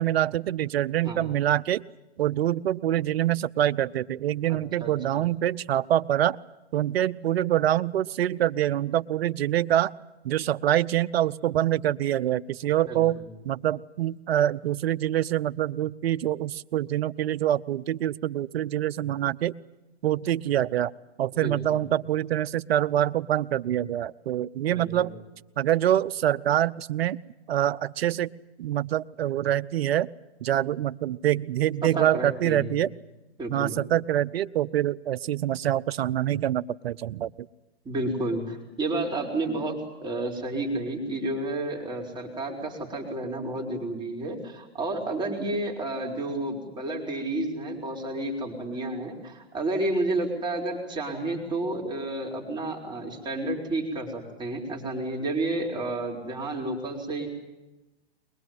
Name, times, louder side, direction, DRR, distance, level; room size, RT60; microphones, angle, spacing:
voice 1, 0.0-1.8 2.2-6.4 6.7-9.9 10.2-13.2 13.4-19.5 20.0-20.9 21.2-25.1 25.6-27.2 27.5-28.3 28.6-30.1 30.4-32.9 33.5-37.3, right 12 dB, 65° right, 14 dB, 0.8 m, -25 dB
voice 2, 4.5-5.2 12.9-13.3 21.4-21.6 24.7-25.1 31.8-32.7 33.4-33.8 37.8-57.3, right 2 dB, 15° right, 0 dB, 4.3 m, -31 dB
23.0 x 22.0 x 9.3 m, 1.0 s
hypercardioid pair, 140°, 33 cm